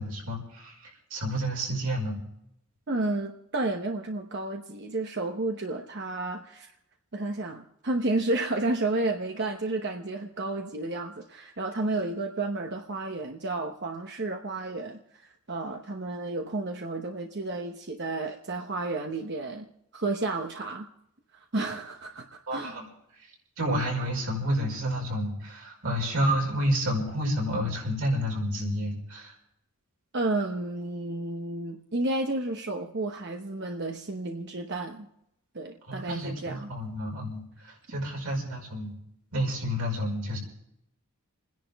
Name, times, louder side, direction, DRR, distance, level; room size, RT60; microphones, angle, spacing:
voice 1, 0.0-2.2 22.5-22.9 23.6-29.3 35.9-38.9 39.3-40.4, equal, 90° right, -1 dB, 5.2 m, -30 dB
voice 2, 2.9-6.7 7.1-20.9 21.3-22.8 30.1-35.1 35.5-36.7, right 2 dB, 50° right, 3 dB, 0.9 m, -31 dB
30.0 x 10.5 x 3.5 m, 0.78 s
head